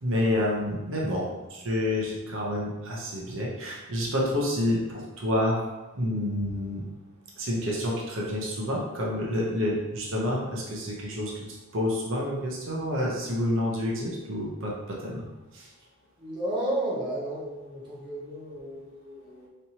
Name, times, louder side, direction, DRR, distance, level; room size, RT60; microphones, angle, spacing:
voice 1, 0.0-5.6 6.0-6.8 7.4-15.2 15.5-15.7, left 1 dB, 60° right, -3 dB, 0.8 m, -29 dB
voice 2, 16.2-19.5, right 1 dB, 20° right, -7 dB, 0.8 m, -33 dB
4.2 x 3.2 x 2.9 m, 1.1 s
head